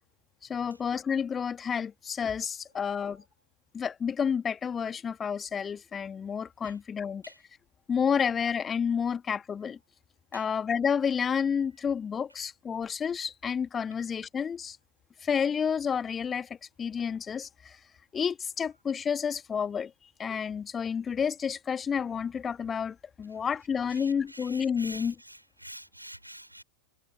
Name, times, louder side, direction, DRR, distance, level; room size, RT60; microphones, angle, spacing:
voice 1, 0.5-3.2 3.7-7.2 7.9-9.8 10.3-14.8 15.2-17.8 18.1-25.1, left 7 dB, 20° left, 1.7 m, -30 dB
voice 2, 23.9-26.6, right 1 dB, 90° right, 4.0 m, -47 dB
figure-of-eight pair, 90°, 0 cm